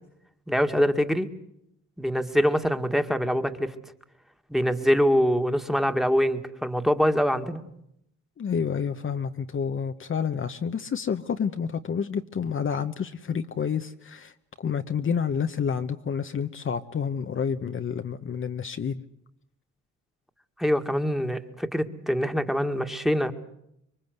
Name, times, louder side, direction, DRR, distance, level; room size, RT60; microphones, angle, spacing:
voice 1, 0.5-1.3 2.0-3.7 4.5-7.6 20.6-23.3, equal, ahead, 7 dB, 1.9 m, -24 dB
voice 2, 8.4-14.3 14.6-19.0, left 7 dB, 40° left, 7 dB, 1.0 m, -29 dB
26.0 x 23.0 x 8.0 m, 0.78 s
cardioid pair, 90°, 30 cm